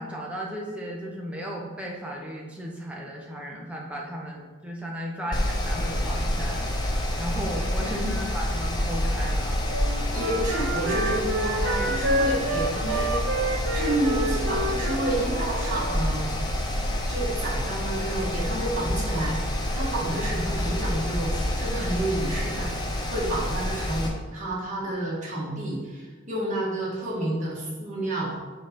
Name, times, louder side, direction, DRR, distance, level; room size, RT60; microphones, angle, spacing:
voice 1, 0.0-6.6 7.2-9.6, equal, 5° right, -3 dB, 0.9 m, -35 dB
Mechanical fan, 5.3-24.1, left 1 dB, 20° left, 0.6 m, -28 dB
Wind instrument woodwind instrument, 9.7-16.1, right 1 dB, 65° right, 0.6 m, -29 dB
voice 2, 10.1-13.1 13.7-16.3 17.1-19.4 19.7-28.3, right 1 dB, 35° right, -6 dB, 1.8 m, -30 dB
5.6 x 4.2 x 5.2 m, 1.4 s
head